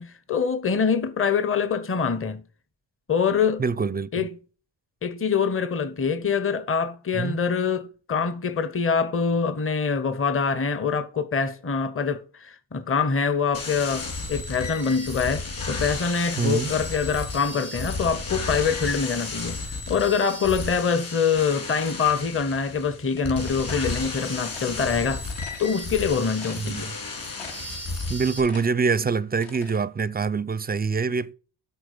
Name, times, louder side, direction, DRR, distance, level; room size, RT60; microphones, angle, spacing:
voice 1, 0.0-2.4 3.1-3.6 4.1-4.3 5.0-19.6 19.9-25.2 25.6-26.9, left 5 dB, 30° left, 0.8 m, -25 dB
voice 2, 3.6-4.3 7.1-7.4 16.4-16.7 26.6-26.9 28.1-31.3, right 5 dB, 20° right, 0.4 m, -25 dB
sound 1, 13.5-28.4, left 3 dB, 50° left, 3.2 m, -33 dB
sound 2, 23.2-24.8 25.3-25.7 26.1-26.2 26.4-27.0 27.4-27.8 28.1-29.8, left 5 dB, 75° left, 2.0 m, -44 dB
8.0 x 3.7 x 6.5 m
supercardioid pair, 50°, 45 cm